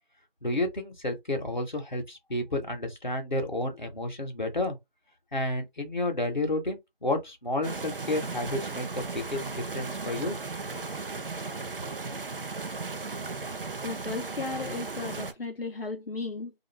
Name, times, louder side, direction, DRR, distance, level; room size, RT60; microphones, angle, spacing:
voice 1, 0.4-4.8 5.3-10.4, left 1 dB, 50° left, 0.9 m, -31 dB
sound 1, 7.6-15.3, right 4 dB, 65° right, 0.5 m, -36 dB
voice 2, 13.8-16.5, left 3 dB, 75° left, 0.6 m, -35 dB
2.5 x 2.4 x 3.1 m
figure-of-eight pair, 180°, 29 cm